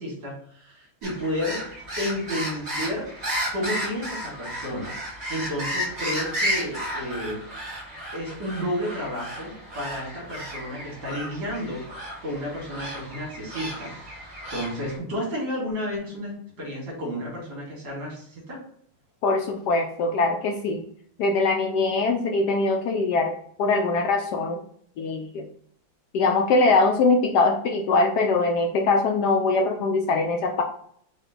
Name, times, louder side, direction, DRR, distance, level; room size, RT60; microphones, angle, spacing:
voice 1, 0.0-1.6 2.0-3.1 3.5-4.9 5.3-7.4 8.1-11.8 12.2-18.6, equal, 70° right, -3 dB, 2.6 m, -32 dB
sound 1, 1.0-15.0, equal, 35° right, 1.9 m, -33 dB
voice 2, 19.2-20.8 21.2-23.3 23.6-24.6 25.0-25.5 26.1-30.6, left 3 dB, 75° left, 4 dB, 1.0 m, -22 dB
5.1 x 2.4 x 3.9 m, 0.63 s
omnidirectional pair, 2.1 m